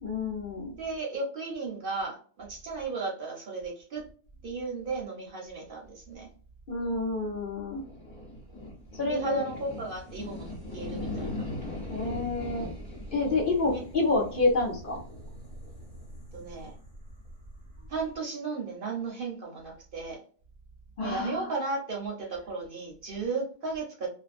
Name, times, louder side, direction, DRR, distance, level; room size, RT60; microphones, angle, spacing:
voice 1, 0.0-0.8 6.7-7.9 9.0-9.4 11.9-12.7 13.1-15.0 21.0-21.5, left 3 dB, 50° left, -3 dB, 0.9 m, -28 dB
voice 2, 0.8-4.0 4.4-6.3 9.0-10.5 10.7-11.4 13.7-13.8 16.3-16.7 17.9-20.2 21.0-24.1, right 4 dB, 55° right, -1 dB, 0.8 m, -35 dB
sound 1, 7.8-18.2, left 1 dB, 20° left, 0.9 m, -40 dB
2.6 x 2.1 x 2.4 m, 0.43 s
omnidirectional pair, 1.2 m